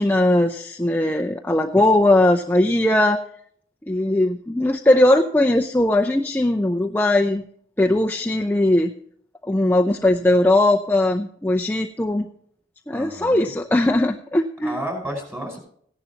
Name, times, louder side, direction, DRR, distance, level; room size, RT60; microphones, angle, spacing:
voice 1, 0.0-3.2 3.9-7.4 7.8-8.9 9.5-12.3 12.9-14.7, left 1 dB, 10° left, 2 dB, 0.6 m, -19 dB
voice 2, 12.9-13.5 14.6-15.6, right 1 dB, 15° right, 1 dB, 5.2 m, -31 dB
16.0 x 11.0 x 2.9 m, 0.62 s
head